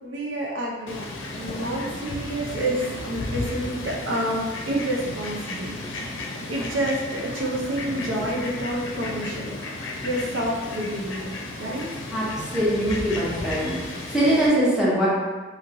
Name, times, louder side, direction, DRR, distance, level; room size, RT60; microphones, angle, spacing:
voice 1, 0.0-1.1 1.4-5.7 6.1-6.2 6.5-11.9, right 1 dB, 75° right, -2 dB, 0.6 m, -29 dB
Fowl, 0.9-14.5, left 2 dB, 85° left, 0.5 m, -34 dB
voice 2, 12.5-13.7 14.1-15.1, right 1 dB, 5° right, -8 dB, 0.7 m, -22 dB
3.0 x 2.8 x 2.5 m, 1.3 s
head